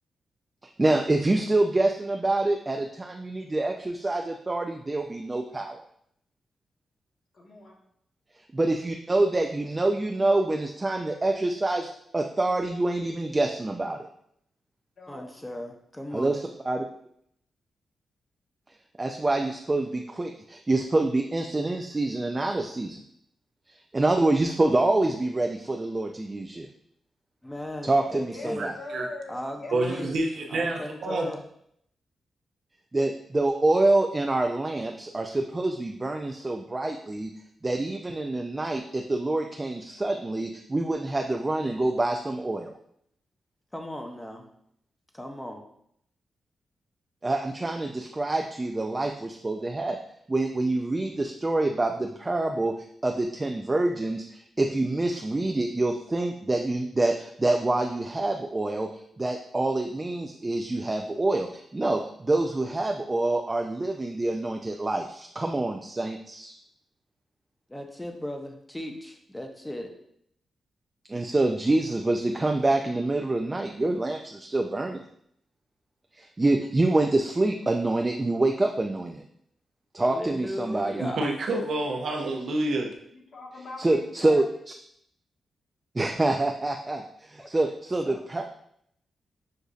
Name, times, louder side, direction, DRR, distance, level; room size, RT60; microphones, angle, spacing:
voice 1, 0.8-5.8 8.5-14.1 16.1-16.9 19.0-23.0 23.9-26.7 27.8-28.7 32.9-37.3 37.6-42.7 47.2-50.0 50.3-52.7 53.0-58.9 59.2-66.5 71.1-75.0 76.1-79.2 79.9-81.0 83.8-84.4 85.9-88.4, right 2 dB, 25° right, 3 dB, 0.3 m, -26 dB
voice 2, 7.3-7.8 15.0-15.6 28.0-30.2 83.1-84.4, left 2 dB, 60° left, -1 dB, 1.1 m, -42 dB
voice 3, 15.1-16.4 27.4-28.7 29.3-30.1 30.5-31.4 43.7-44.5 45.1-45.6 67.7-70.0 80.0-81.3 87.4-87.5 88.0-88.2, left 1 dB, 10° left, 3 dB, 0.7 m, -37 dB
voice 4, 28.6-29.1 29.7-31.3 81.0-82.9, right 2 dB, 75° right, 1 dB, 0.7 m, -28 dB
6.3 x 2.6 x 2.4 m, 0.71 s
cardioid pair, 75°, 0 cm